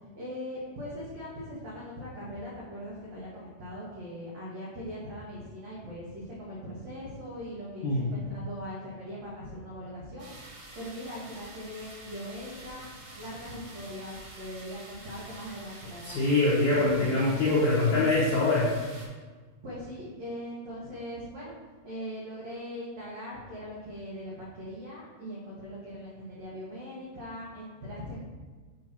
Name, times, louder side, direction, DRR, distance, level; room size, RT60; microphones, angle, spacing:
voice 1, 0.1-10.3 10.7-16.2 16.7-17.1 19.6-21.5 21.8-28.2, equal, 75° right, -6 dB, 1.5 m, -40 dB
sound 1, 10.2-19.1, right 2 dB, 60° right, 2.1 m, -47 dB
voice 2, 16.0-18.8, left 2 dB, 75° left, -7 dB, 1.8 m, -24 dB
8.3 x 2.8 x 6.0 m, 1.4 s
omnidirectional pair, 5.0 m